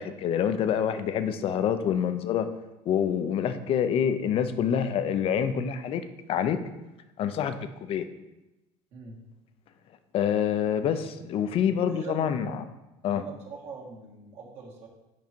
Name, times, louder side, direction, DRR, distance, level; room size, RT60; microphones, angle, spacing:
voice 1, 0.0-2.5 2.9-6.6 7.2-7.5 7.8-8.1 10.1-12.7 13.0-13.2, left 8 dB, 50° left, 10 dB, 0.6 m, -26 dB
voice 2, 8.9-9.2 11.7-12.8 13.1-14.9, right 4 dB, 60° right, -3 dB, 1.9 m, -43 dB
5.9 x 4.9 x 4.5 m, 1.0 s
cardioid pair, 115°, 13 cm